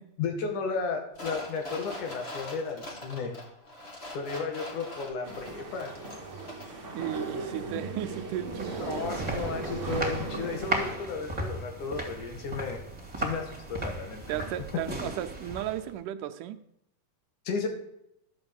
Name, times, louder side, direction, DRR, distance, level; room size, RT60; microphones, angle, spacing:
voice 1, 0.2-3.3 4.1-5.9 8.8-12.8 13.2-14.4 17.5-17.7, left 5 dB, 75° left, 4 dB, 3.3 m, -34 dB
sound 1, 1.1-6.8 7.1-7.2, left 1 dB, 25° left, 1.7 m, -42 dB
sound 2, 5.2-10.9, right 3 dB, 35° right, 1.4 m, -37 dB
voice 2, 6.9-9.2 14.3-16.6, right 12 dB, 85° right, 8 dB, 2.3 m, -35 dB
sound 3, 8.2-16.0, right 2 dB, 15° right, 1.9 m, -36 dB
12.0 x 6.1 x 7.1 m, 0.81 s
omnidirectional pair, 3.6 m